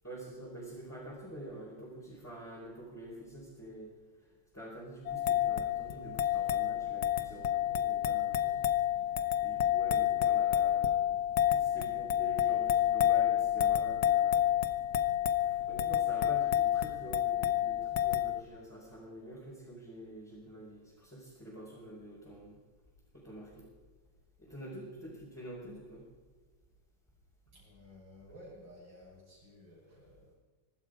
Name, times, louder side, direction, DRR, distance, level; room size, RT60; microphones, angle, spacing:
voice 1, 0.0-3.9 4.2-8.6 9.4-11.1 11.5-14.5 15.4-22.6 23.1-23.7 24.4-26.1, right 1 dB, 5° left, -7 dB, 4.4 m, -47 dB
sound 1, 5.1-18.4, left 11 dB, 60° left, 1.2 m, -29 dB
voice 2, 24.7-25.1 27.5-30.4, equal, 75° right, -4 dB, 7.3 m, -55 dB
23.5 x 12.5 x 4.9 m, 1.4 s
omnidirectional pair, 2.1 m